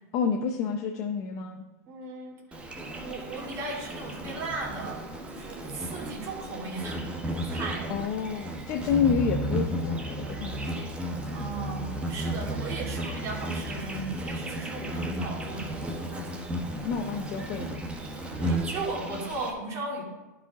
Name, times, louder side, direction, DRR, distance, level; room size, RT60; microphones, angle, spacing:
voice 1, 0.1-1.7 7.9-10.9 16.8-17.8, left 6 dB, 40° left, 3 dB, 0.7 m, -29 dB
voice 2, 1.9-5.0 5.3-7.0 7.4-7.9 11.3-16.4 18.3-20.0, right 3 dB, 35° right, -3 dB, 2.8 m, -37 dB
Insect, 2.5-19.5, right 1 dB, 10° right, 1.0 m, -34 dB
12.0 x 5.0 x 3.6 m, 1.1 s
hypercardioid pair, 130°, 9 cm